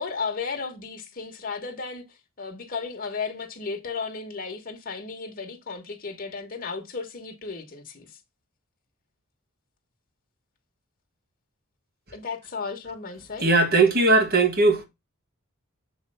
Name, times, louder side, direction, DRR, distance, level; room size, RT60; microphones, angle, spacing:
voice 1, 0.0-8.2 12.1-13.5, left 4 dB, 40° left, 1.3 m, -34 dB
voice 2, 13.4-14.8, right 3 dB, 45° right, 1.6 m, -19 dB
7.4 x 3.3 x 5.4 m
head